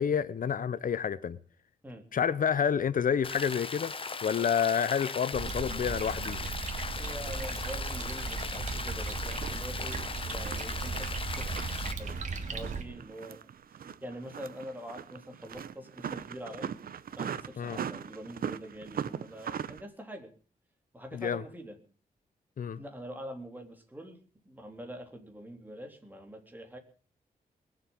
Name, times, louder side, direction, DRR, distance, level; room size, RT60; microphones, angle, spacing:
voice 1, 0.0-1.4 2.1-3.9 4.2-6.4 17.6-17.8 21.1-21.4 22.6-22.8, left 7 dB, 65° left, 0.8 m, -29 dB
Rain, 3.2-11.9, left 4 dB, 35° left, 1.2 m, -38 dB
sound 1, 5.3-12.8, right 4 dB, 55° right, 2.7 m, -37 dB
voice 2, 7.0-10.0 10.3-11.7 12.0-12.2 12.5-13.4 13.7-16.7 17.2-20.3 20.9-21.8 22.7-24.2 24.5-26.8, equal, 10° right, 3.6 m, -44 dB
sound 2, 9.1-19.8, right 8 dB, 75° right, 1.0 m, -40 dB
21.0 x 7.8 x 8.8 m
wide cardioid pair, 125°, 15 cm